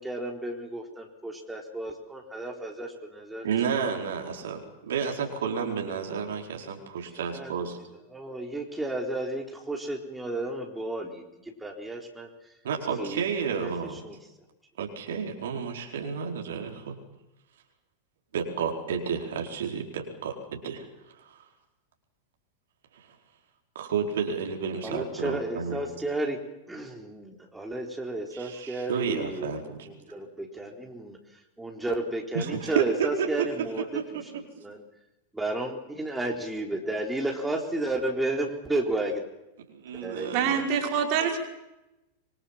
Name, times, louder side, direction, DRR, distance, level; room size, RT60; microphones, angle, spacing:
voice 1, 0.0-3.5 7.3-7.5 8.1-12.3 13.0-13.2 13.5-13.7 14.0-14.2 24.8-26.4 26.7-29.5 30.1-31.2 31.6-34.2 34.6-34.8 35.3-39.2 39.9-40.6 41.2-41.4, right 2 dB, 5° right, 1 dB, 3.9 m, -32 dB
voice 2, 3.4-7.8 12.6-14.0 14.8-17.0 18.3-21.4 22.9-23.1 23.7-25.8 28.3-29.9 32.3-33.5 33.9-34.2 39.7-40.6, right 6 dB, 60° right, 2 dB, 4.6 m, -31 dB
voice 3, 40.3-41.4, right 7 dB, 45° right, 3 dB, 5.5 m, -25 dB
26.0 x 24.0 x 7.4 m, 0.93 s
figure-of-eight pair, 90°, 0 cm